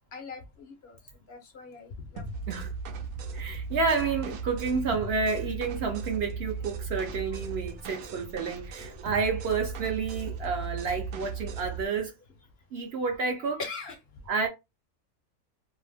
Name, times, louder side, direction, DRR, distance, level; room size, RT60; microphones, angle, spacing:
voice 1, 0.1-1.0 1.3-2.2 13.6-14.0, left 4 dB, 60° left, 0.8 m, -40 dB
sound 1, 2.2-11.9, right 4 dB, 90° right, 1.0 m, -37 dB
voice 2, 3.3-12.2 12.7-13.6 14.3-14.5, right 4 dB, 60° right, 0.7 m, -30 dB
2.6 x 2.1 x 3.3 m
omnidirectional pair, 1.3 m